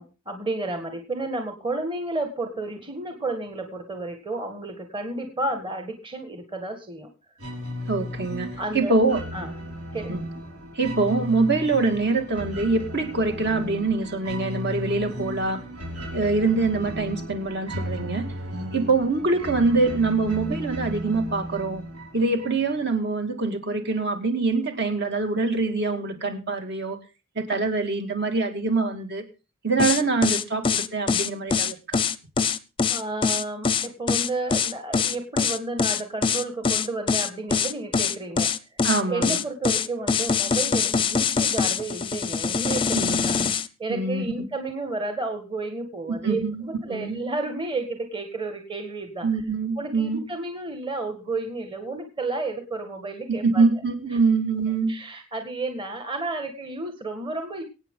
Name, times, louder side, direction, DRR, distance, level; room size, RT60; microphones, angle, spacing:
voice 1, 0.0-7.1 8.6-9.0 9.3-9.5 9.9-10.2 32.9-43.4 43.8-49.3 49.8-53.6 54.9-57.6, right 2 dB, 25° right, 5 dB, 1.8 m, -32 dB
sound 1, 7.4-22.9, equal, 75° right, 5.4 m, -35 dB
voice 2, 7.9-8.5 8.7-9.2 10.1-10.2 10.7-15.6 16.1-18.2 18.7-21.8 22.1-27.0 27.4-29.2 29.6-32.0 38.8-39.4 42.9-43.5 43.9-44.2 46.1-46.6 46.9-47.2 49.2-50.2 53.3-55.0, right 3 dB, 50° right, 5 dB, 2.3 m, -24 dB
sound 2, 29.8-43.7, left 5 dB, 25° left, 0.6 m, -23 dB
23.5 x 8.9 x 3.8 m, 0.31 s
head